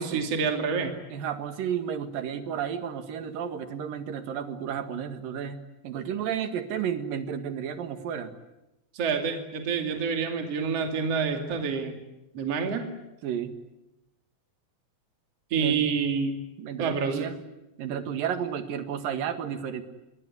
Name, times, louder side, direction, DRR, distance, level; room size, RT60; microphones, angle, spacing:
voice 1, 0.0-0.9 8.9-12.0 12.3-12.9 15.5-16.4 16.8-17.3, right 5 dB, 45° right, 4 dB, 3.5 m, -27 dB
voice 2, 1.1-8.3 13.2-13.5 15.6-15.8 16.6-17.4 17.8-19.8, right 8 dB, 75° right, 9 dB, 3.5 m, -32 dB
27.0 x 22.5 x 9.9 m, 0.92 s
omnidirectional pair, 4.0 m